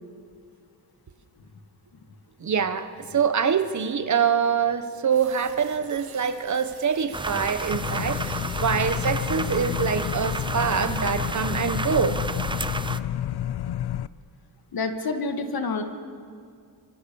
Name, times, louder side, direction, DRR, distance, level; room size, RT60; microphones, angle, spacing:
voice 1, 2.4-12.2, right 6 dB, 50° right, 10 dB, 1.2 m, -25 dB
sound 1, 5.1-11.0, right 6 dB, 75° right, 2.6 m, -48 dB
sound 2, 7.1-13.0, right 3 dB, 15° right, 0.5 m, -32 dB
sound 3, 7.7-14.1, left 11 dB, 85° left, 0.7 m, -30 dB
voice 2, 14.7-15.8, left 3 dB, 70° left, 5 dB, 2.2 m, -28 dB
27.5 x 25.5 x 7.1 m, 2.3 s
wide cardioid pair, 160°, 38 cm